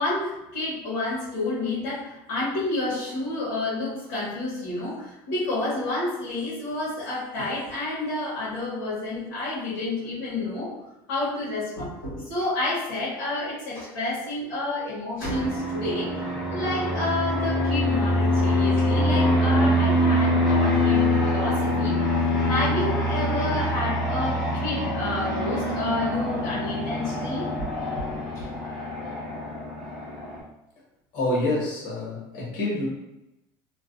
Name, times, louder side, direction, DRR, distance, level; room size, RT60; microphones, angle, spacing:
voice 1, 0.0-10.7 11.1-16.2 16.5-27.5 28.3-28.5, left 2 dB, 85° left, -9 dB, 1.0 m, -29 dB
Fixed-wing aircraft airplane, 15.2-30.4, left 1 dB, ahead, 0.6 m, -24 dB
voice 2, 31.1-32.9, left 1 dB, 65° left, -5 dB, 1.2 m, -27 dB
2.3 x 2.2 x 2.5 m, 0.93 s
cardioid pair, 165°, 10 cm